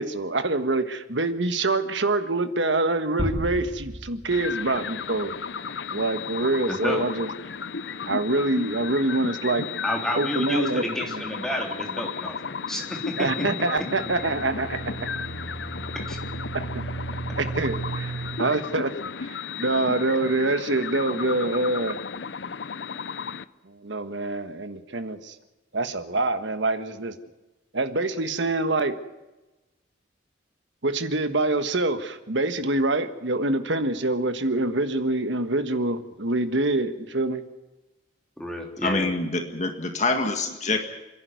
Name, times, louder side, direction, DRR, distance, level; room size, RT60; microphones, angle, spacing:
voice 1, 0.0-5.3 5.9-7.3 8.1-9.7 10.2-11.2 13.2-15.1 16.7-16.8 17.4-18.9 19.2-22.0 23.6-25.3 25.7-27.1 27.7-29.0 30.8-37.4, right 2 dB, 65° right, 9 dB, 1.5 m, -25 dB
sound 1, 3.2-5.1, equal, 25° right, 4.0 m, -33 dB
sound 2, 4.3-23.4, left 6 dB, 60° left, 0.7 m, -34 dB
voice 2, 6.7-7.1 9.8-13.5 16.1-16.2 38.4-39.1, left 1 dB, 5° left, 0 dB, 3.4 m, -30 dB
sound 3, 13.9-18.4, right 3 dB, 80° left, 6.8 m, -35 dB
voice 3, 38.8-40.8, left 3 dB, 40° left, 5 dB, 1.8 m, -25 dB
28.0 x 11.0 x 9.5 m, 1.1 s
head